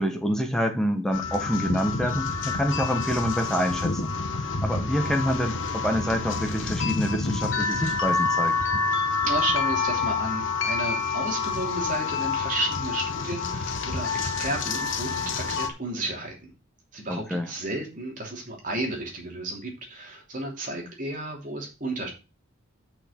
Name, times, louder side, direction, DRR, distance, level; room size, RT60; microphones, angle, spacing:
voice 1, 0.0-4.1 4.4-8.6 17.1-17.5, equal, ahead, 1.3 m, -27 dB
sound 1, 1.1-15.7, left 4 dB, 60° left, 1.1 m, -28 dB
voice 2, 9.2-16.5 16.9-22.1, right 2 dB, 35° right, 3.1 m, -32 dB
6.5 x 6.2 x 6.4 m
head